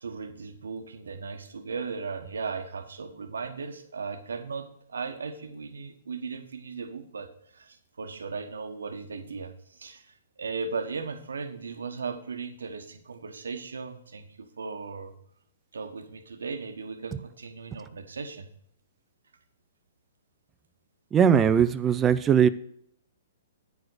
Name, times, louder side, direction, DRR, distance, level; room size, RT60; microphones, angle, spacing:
voice 1, 0.0-15.1 15.7-18.5, right 4 dB, 80° right, 1.1 m, -37 dB
voice 2, 21.1-22.5, right 8 dB, 20° right, 0.5 m, -20 dB
9.2 x 4.8 x 6.3 m
hypercardioid pair, 125°, 0 cm